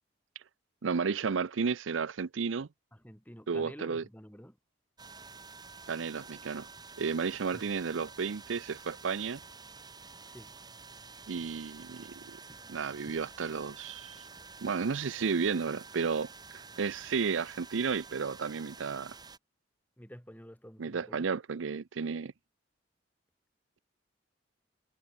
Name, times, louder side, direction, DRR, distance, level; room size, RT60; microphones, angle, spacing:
voice 1, 0.8-2.7 3.5-4.0 5.9-6.7 7.0-9.4 11.3-12.4 12.7-14.3 14.6-19.1 20.8-22.3, right 5 dB, 85° right, 0.6 m, -33 dB
voice 2, 2.9-4.6 7.5-7.7 10.2-10.5 20.0-21.3, equal, 10° left, 6.3 m, -50 dB
sound 1, 5.0-19.4, right 4 dB, 20° right, 5.1 m, -50 dB
head